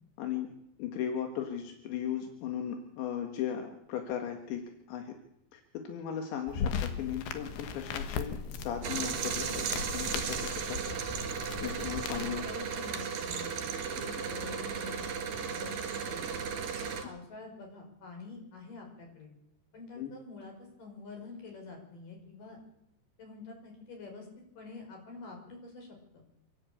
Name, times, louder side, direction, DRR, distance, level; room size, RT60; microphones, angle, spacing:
voice 1, 0.2-0.5 0.8-4.6 4.9-5.1 5.5-11.0 11.6-12.4 20.0-20.1, left 9 dB, 85° left, 4 dB, 4.1 m, -37 dB
sound 1, 6.5-12.5, left 6 dB, 70° left, 3.3 m, -38 dB
sound 2, 8.8-17.0, right 6 dB, 60° right, 3.8 m, -35 dB
voice 2, 12.1-13.5 13.9-16.3 16.8-19.3 19.7-22.6 23.2-24.3 24.6-25.9 26.1-26.2, left 4 dB, 50° left, 2 dB, 6.9 m, -47 dB
27.5 x 11.5 x 8.6 m, 0.78 s
omnidirectional pair, 5.0 m